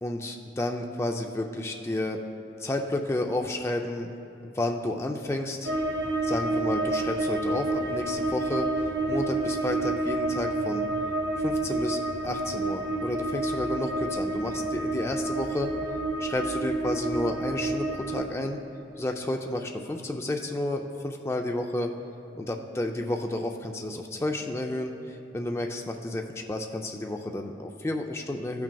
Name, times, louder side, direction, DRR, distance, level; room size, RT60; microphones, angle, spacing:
voice 1, 0.0-2.2 2.6-4.1 4.4-5.7 6.2-10.9 11.4-15.7 16.2-18.6 19.0-21.9 22.4-28.6, left 1 dB, 15° left, 3 dB, 0.3 m, -31 dB
sound 1, 5.6-18.3, right 2 dB, 60° right, 0.6 m, -29 dB
14.5 x 5.9 x 2.3 m, 2.9 s
head